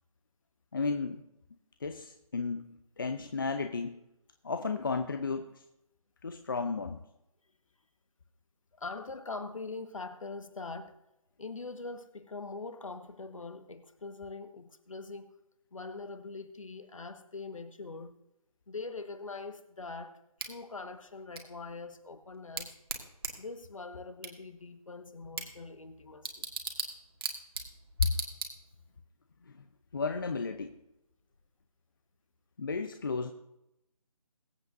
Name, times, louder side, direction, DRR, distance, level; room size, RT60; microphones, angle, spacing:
voice 1, 0.7-1.2 1.8-2.7 3.0-4.0 4.4-5.5 6.2-7.0 28.0-28.1 29.9-30.8 32.6-33.3, left 4 dB, 35° left, 0.7 m, -33 dB
voice 2, 8.8-10.9 11.4-15.3 15.7-18.1 18.7-22.7 23.4-26.4, left 3 dB, 60° left, 1.5 m, -43 dB
Bicycle / Tick, 20.4-29.0, right 4 dB, 40° right, 1.7 m, -41 dB
22.0 x 8.2 x 2.6 m
figure-of-eight pair, 160°, 19 cm